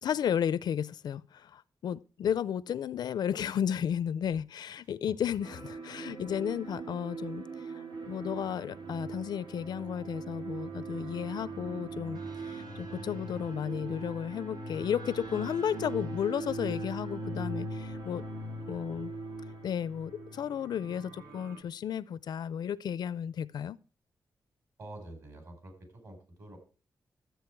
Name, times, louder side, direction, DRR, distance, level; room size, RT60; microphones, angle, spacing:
voice 1, 0.0-18.2 18.7-19.1 19.6-23.8, left 9 dB, 75° left, 0.4 m, -33 dB
sound 1, 5.4-21.6, right 2 dB, 80° right, 2.1 m, -40 dB
voice 2, 24.8-26.6, right 1 dB, 50° right, 4.7 m, -48 dB
12.5 x 8.1 x 4.5 m
wide cardioid pair, 175°, 7 cm